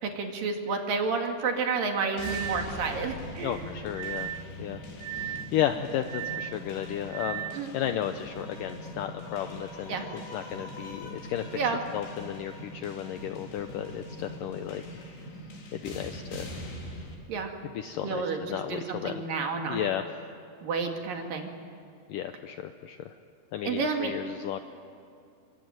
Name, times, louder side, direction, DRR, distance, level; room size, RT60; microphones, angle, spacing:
voice 1, 0.0-3.6 7.5-7.7 9.9-10.1 11.5-11.8 17.3-17.5 18.0-19.9 20.6-21.5 23.6-24.1, right 5 dB, 60° right, 3 dB, 3.6 m, -30 dB
sound 1, 0.7-0.8 2.2-2.7 3.9-4.5 5.0-5.5 6.1-6.6 7.1-7.6, right 12 dB, 75° right, 1.3 m, -36 dB
sound 2, 2.2-17.2, left 1 dB, 65° left, 5.7 m, -42 dB
voice 2, 3.4-4.3 4.6-7.5 7.7-11.6 11.9-15.0 15.7-16.5 17.6-19.2 19.6-20.0 22.1-23.1 23.5-24.6, left 10 dB, 80° left, 7 dB, 1.9 m, -34 dB
26.0 x 24.0 x 9.3 m, 2.5 s
omnidirectional pair, 4.9 m